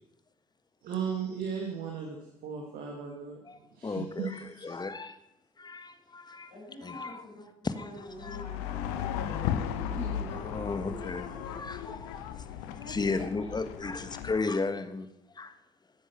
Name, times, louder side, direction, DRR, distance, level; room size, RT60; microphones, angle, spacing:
voice 1, 0.8-3.4 3.7-4.7, right 7 dB, 65° right, 1 dB, 2.2 m, -36 dB
voice 2, 3.4-5.2 5.6-6.5 6.8-7.3 7.6-8.4 10.3-15.1 15.3-15.6, left 3 dB, 25° left, 11 dB, 1.5 m, -35 dB
voice 3, 6.5-7.4 7.7-11.6 12.9-13.9, left 1 dB, 90° left, -7 dB, 5.7 m, -45 dB
sound 1, 8.1-14.4, left 9 dB, 75° left, 0.9 m, -36 dB
15.5 x 10.0 x 5.8 m, 0.81 s
hypercardioid pair, 45°, 16 cm